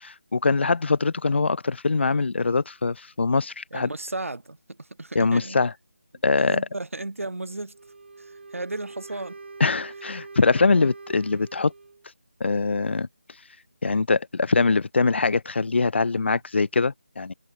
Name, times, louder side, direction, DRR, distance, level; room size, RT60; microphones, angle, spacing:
voice 1, 0.0-3.9 5.2-5.7 6.2-6.6 9.6-11.7 12.4-13.1 13.8-17.3, left 4 dB, 55° left, 0.4 m, -23 dB
voice 2, 3.7-5.6 6.1-7.8 8.2-9.4, right 2 dB, 80° right, 1.9 m, -35 dB
Wind instrument woodwind instrument, 7.7-12.1, right 3 dB, 55° right, 0.9 m, -44 dB
figure-of-eight pair, 165°, 7 cm